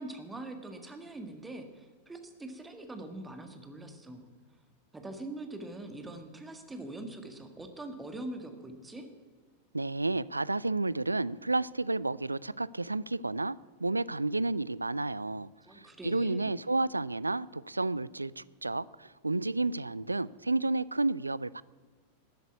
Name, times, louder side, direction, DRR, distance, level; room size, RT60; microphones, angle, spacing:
voice 1, 0.0-4.3 4.9-9.1 15.6-16.6, right 2 dB, 10° right, 1.8 m, -43 dB
voice 2, 9.7-15.5 15.7-21.6, right 2 dB, 80° right, 0.3 m, -31 dB
13.5 x 8.0 x 9.5 m
figure-of-eight pair, 90°, 0 cm